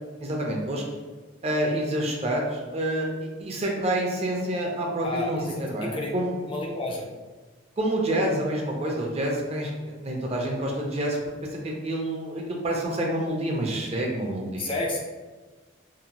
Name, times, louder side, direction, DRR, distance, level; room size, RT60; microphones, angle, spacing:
voice 1, 0.2-0.8 1.4-3.1 3.4-6.3 7.8-9.7 10.0-11.2 11.6-14.7, right 1 dB, 35° right, -1 dB, 0.4 m, -27 dB
voice 2, 5.0-6.1 6.4-7.1 14.6-15.0, left 2 dB, 25° left, -1 dB, 0.3 m, -31 dB
2.7 x 2.4 x 2.8 m, 1.3 s
head